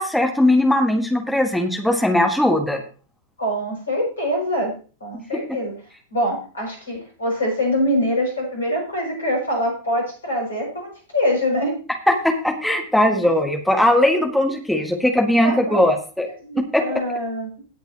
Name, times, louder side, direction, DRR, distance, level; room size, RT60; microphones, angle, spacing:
voice 1, 0.0-2.8 12.1-16.3 16.7-17.0, left 1 dB, ahead, 3 dB, 1.7 m, -19 dB
voice 2, 3.4-4.7 5.0-5.7 6.1-11.7 15.4-15.8 16.4-17.6, equal, 70° left, 0 dB, 6.5 m, -24 dB
17.5 x 8.1 x 3.0 m, 0.38 s
figure-of-eight pair, 90°, 0 cm